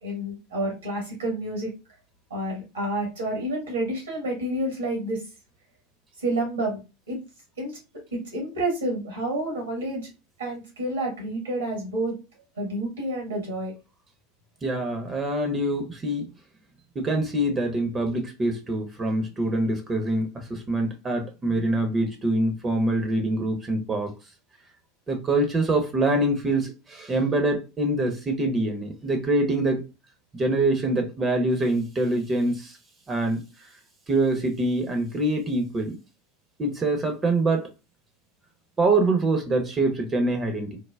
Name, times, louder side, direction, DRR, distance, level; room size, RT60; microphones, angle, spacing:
voice 1, 0.0-1.7 2.3-5.2 6.2-7.2 7.6-7.8 8.1-10.1 10.4-12.2 12.6-13.7, right 1 dB, 80° right, 1.3 m, -29 dB
voice 2, 14.6-16.2 17.0-24.1 25.1-29.8 30.3-32.8 33.1-33.4 34.1-35.9 36.6-37.7 38.8-40.8, right 2 dB, 25° right, 0.6 m, -25 dB
3.3 x 2.1 x 2.2 m
figure-of-eight pair, 80°, 0 cm